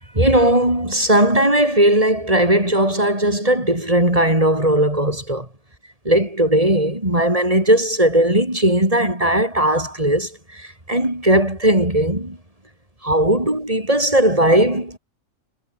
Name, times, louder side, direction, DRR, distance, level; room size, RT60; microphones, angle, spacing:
voice 1, 0.2-5.5 6.1-10.3 10.9-12.4 13.0-15.0, right 1 dB, 25° right, 5.6 m, -17 dB
omnidirectional pair, 1.3 m